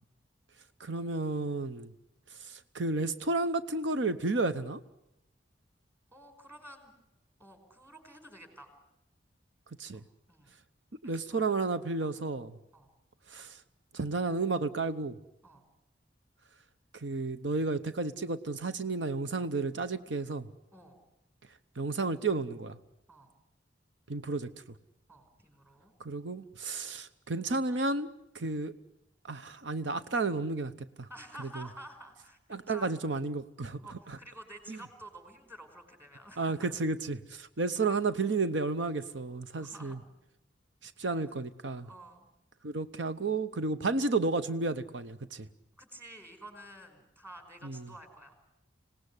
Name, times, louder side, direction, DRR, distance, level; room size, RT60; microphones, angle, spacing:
voice 1, 0.8-1.9 2.4-4.8 9.8-10.0 11.0-12.6 13.3-13.6 13.9-15.2 16.9-20.5 21.8-22.8 24.1-24.5 26.0-28.1 28.3-28.7 29.2-30.7 31.0-31.1 31.6-31.7 32.5-33.8 34.1-34.2 34.7-34.8 36.4-40.0 40.8-41.9 42.6-45.5 47.6-47.9, right 3 dB, 90° right, 11 dB, 0.9 m, -32 dB
voice 2, 6.1-6.9 7.4-8.7 9.9-10.5 11.0-11.5 12.0-12.1 12.7-12.9 15.4-15.6 20.7-21.0 23.1-23.3 25.1-25.9 28.4-28.6 31.1-33.0 33.8-36.6 39.6-40.1 41.0-41.4 41.8-42.3 45.8-48.3, right 1 dB, 15° right, 5 dB, 5.1 m, -51 dB
26.0 x 18.5 x 9.9 m, 0.87 s
head